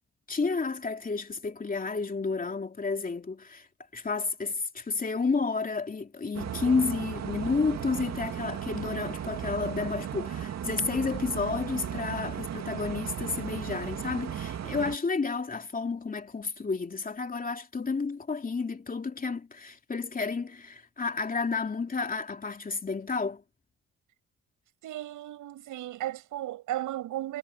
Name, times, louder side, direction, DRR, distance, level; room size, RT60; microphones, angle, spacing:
voice 1, 0.3-3.7 3.9-23.4, left 4 dB, 30° left, 3.0 m, -31 dB
sound 1, 6.3-15.0, right 9 dB, 60° right, 2.3 m, -36 dB
voice 2, 24.8-27.4, right 13 dB, 85° right, 7.1 m, -35 dB
cardioid pair, 90°, 30 cm